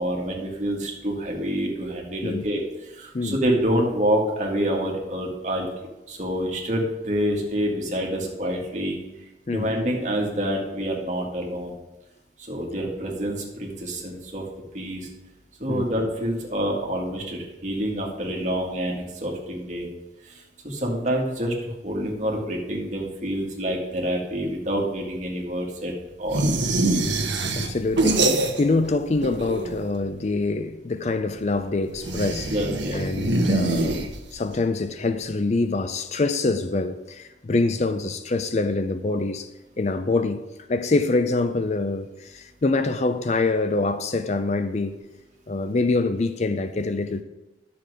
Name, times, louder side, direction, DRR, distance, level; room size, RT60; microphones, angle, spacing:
voice 1, 0.0-5.7 6.1-9.0 9.5-11.8 12.5-14.4 14.7-15.1 15.6-19.9 20.2-25.9 26.2-26.5 32.5-33.0, equal, 40° right, 2.1 m, -27 dB
sound 1, 26.3-28.9 29.1-30.0 32.0-34.5, right 2 dB, 80° right, 1.2 m, -24 dB
voice 2, 27.6-32.5 32.9-34.0 34.3-39.5 39.8-45.0 45.5-47.2, left 3 dB, 35° left, 0.4 m, -25 dB
10.5 x 6.9 x 4.9 m
head